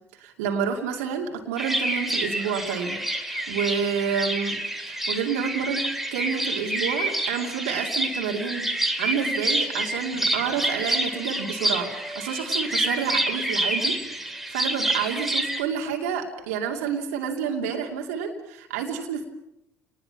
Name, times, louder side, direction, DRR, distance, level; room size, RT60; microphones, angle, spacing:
voice 1, 0.1-4.6 4.9-5.8 6.1-19.2, right 7 dB, 70° right, 2 dB, 2.6 m, -29 dB
sound 1, 1.6-15.6, right 1 dB, 5° right, 2.6 m, -28 dB
30.0 x 20.0 x 5.9 m, 0.82 s
figure-of-eight pair, 60°, 8 cm